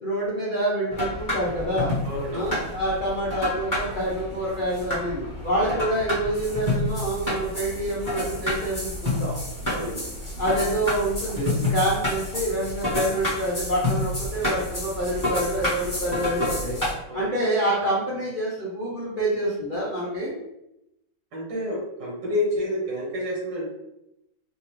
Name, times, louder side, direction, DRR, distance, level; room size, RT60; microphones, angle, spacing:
voice 1, 0.0-1.9 2.3-9.4 9.8-10.0 10.4-16.8 17.1-20.3, right 1 dB, 65° left, -7 dB, 0.4 m, -27 dB
sound 1, 0.9-16.9, left 1 dB, 15° left, 0.8 m, -29 dB
voice 2, 2.0-2.5 5.6-5.8 9.7-10.0 17.1-17.3 21.3-23.7, left 1 dB, 70° right, -4 dB, 1.7 m, -29 dB
4.1 x 2.4 x 3.1 m, 0.86 s
omnidirectional pair, 2.1 m